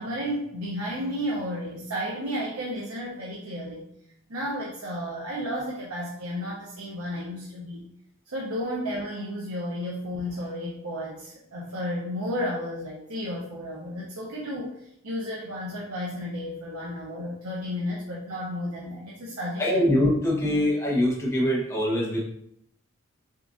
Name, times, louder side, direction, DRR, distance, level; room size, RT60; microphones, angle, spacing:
voice 1, 0.0-3.8 4.3-7.9 8.3-19.8, equal, 90° right, -4 dB, 0.9 m, -32 dB
voice 2, 19.6-22.2, left 1 dB, 10° left, -5 dB, 0.9 m, -23 dB
6.5 x 2.5 x 2.6 m, 0.71 s
head